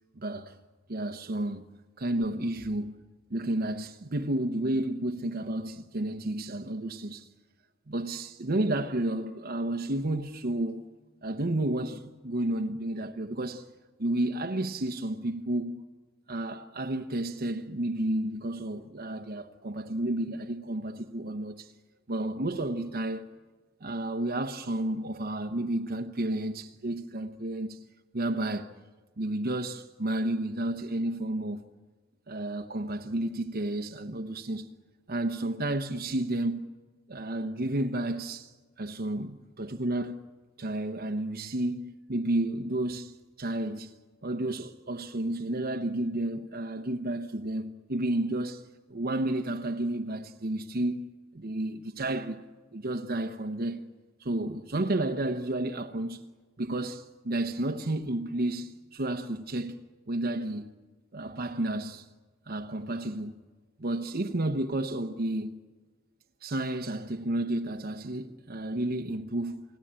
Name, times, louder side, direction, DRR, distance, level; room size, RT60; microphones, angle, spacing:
voice 1, 0.2-0.5 0.9-1.6 2.0-2.9 3.3-7.3 7.9-10.9 11.2-13.7 14.0-15.8 16.3-21.7 22.1-23.3 23.8-27.8 28.1-28.7 29.2-31.6 32.3-34.7 35.1-36.7 37.1-40.2 40.6-43.9 44.2-48.6 48.9-52.4 52.7-53.8 54.2-56.2 56.6-59.7 60.1-60.7 61.1-62.1 62.5-63.4 63.8-65.6 66.4-69.6, right 1 dB, 50° right, 0.9 m, -31 dB
29.0 x 20.5 x 8.9 m
head